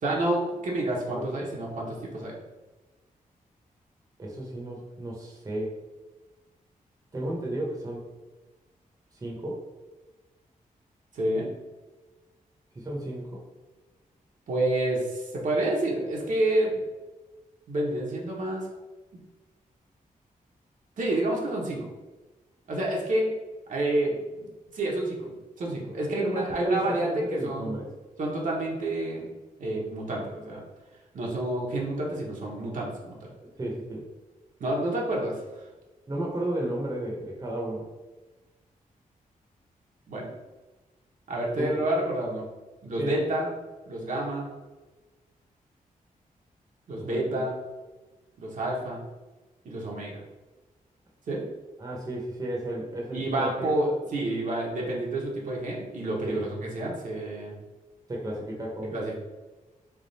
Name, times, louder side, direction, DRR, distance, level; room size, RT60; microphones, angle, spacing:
voice 1, 0.0-2.3 11.1-11.5 14.5-16.8 17.7-18.7 21.0-21.9 22.7-23.3 23.7-27.7 28.2-29.3 29.6-30.6 31.1-33.3 34.6-35.4 40.1-40.3 41.3-42.4 42.8-43.5 43.9-44.5 46.9-47.6 48.4-49.0 49.6-50.2 51.3-51.4 53.1-57.6 58.9-59.1, right 1 dB, 60° right, -2 dB, 0.9 m, -29 dB
voice 2, 4.2-5.7 7.1-8.1 9.2-9.6 12.7-13.3 26.2-27.9 33.6-34.0 36.1-37.9 41.6-41.8 43.0-43.1 46.9-47.4 51.8-53.8 56.2-56.4 58.1-58.9, right 1 dB, 25° right, -3 dB, 0.8 m, -33 dB
3.5 x 2.4 x 4.0 m, 1.2 s
wide cardioid pair, 125°, 15 cm